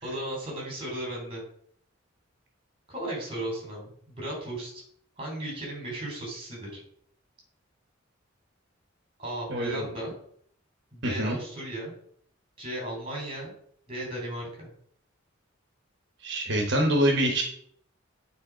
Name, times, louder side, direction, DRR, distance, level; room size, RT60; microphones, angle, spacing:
voice 1, 0.0-1.4 2.9-4.8 5.2-6.8 9.2-10.1 10.9-11.9 12.6-13.5 13.9-14.7, right 1 dB, 30° right, -1 dB, 3.3 m, -35 dB
voice 2, 9.5-9.9 11.0-11.4 16.2-17.4, right 1 dB, 60° right, 2 dB, 1.2 m, -25 dB
8.8 x 3.6 x 5.0 m, 0.62 s
head